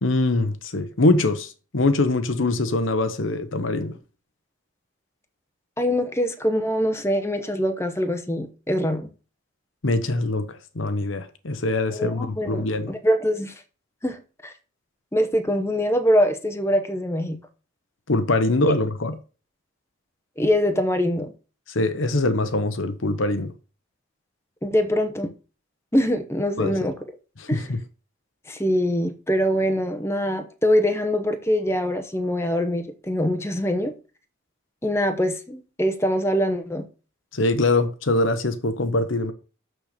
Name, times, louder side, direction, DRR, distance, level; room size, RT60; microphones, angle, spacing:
voice 1, 0.0-4.0 9.8-12.9 18.1-19.1 21.7-23.5 26.6-26.9 27.4-27.8 37.3-39.3, left 2 dB, 75° left, 1.0 m, -23 dB
voice 2, 5.8-9.1 11.9-13.5 14.0-14.2 14.4-14.5 15.1-17.4 20.4-21.3 24.6-25.3 25.9-27.0 27.5-27.6 28.5-33.9 34.8-36.9, equal, 15° left, 0.9 m, -23 dB
6.7 x 6.3 x 6.7 m
head